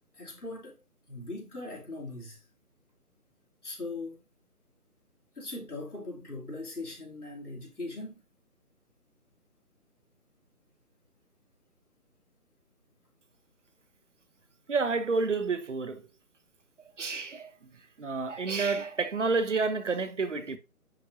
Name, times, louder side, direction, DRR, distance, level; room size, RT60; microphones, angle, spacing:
voice 1, 0.1-0.8 1.1-2.4 3.6-4.2 5.4-8.2, left 2 dB, 90° left, 3.3 m, -40 dB
voice 2, 14.7-16.0 17.0-17.5 18.0-20.6, right 4 dB, 55° right, 1.0 m, -29 dB
10.0 x 3.5 x 2.7 m
figure-of-eight pair, 150°, 44 cm